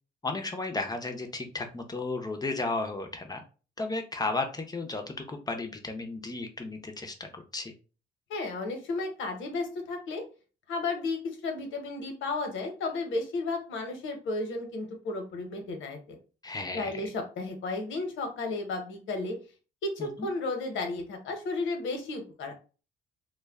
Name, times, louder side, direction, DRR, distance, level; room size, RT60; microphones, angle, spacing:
voice 1, 0.2-3.4 3.8-7.7 16.4-17.0 20.0-20.3, left 3 dB, 20° left, 4 dB, 0.5 m, -34 dB
voice 2, 8.3-10.2 10.7-16.2 16.7-19.4 19.8-22.5, left 3 dB, 75° left, 4 dB, 0.9 m, -33 dB
2.2 x 2.1 x 3.4 m, 0.35 s
cardioid pair, 90°, 20 cm